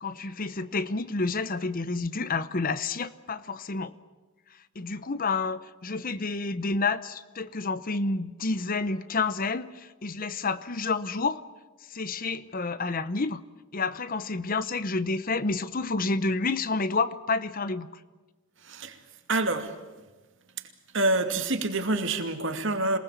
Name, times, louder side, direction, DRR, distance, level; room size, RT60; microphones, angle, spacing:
voice 1, 0.0-4.0 4.7-11.4 11.9-13.4 13.7-17.9, left 3 dB, 40° left, 15 dB, 0.9 m, -29 dB
voice 2, 18.6-19.0 19.3-19.7 20.9-23.0, right 2 dB, 60° right, 7 dB, 2.5 m, -27 dB
27.0 x 19.5 x 8.3 m, 1.2 s
head